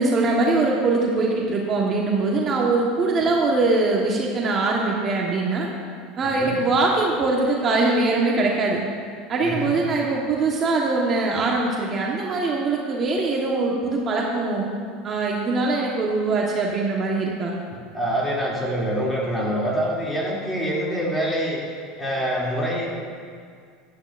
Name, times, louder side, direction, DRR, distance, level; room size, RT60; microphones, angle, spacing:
voice 1, 0.0-5.7 6.2-8.8 9.3-14.7 15.0-17.5, right 3 dB, 35° right, -2 dB, 1.3 m, -22 dB
voice 2, 6.2-6.5 9.4-9.7 17.9-21.6 22.0-23.0, equal, 10° left, -5 dB, 2.7 m, -25 dB
13.0 x 10.5 x 2.6 m, 2.1 s
supercardioid pair, 110°, 0 cm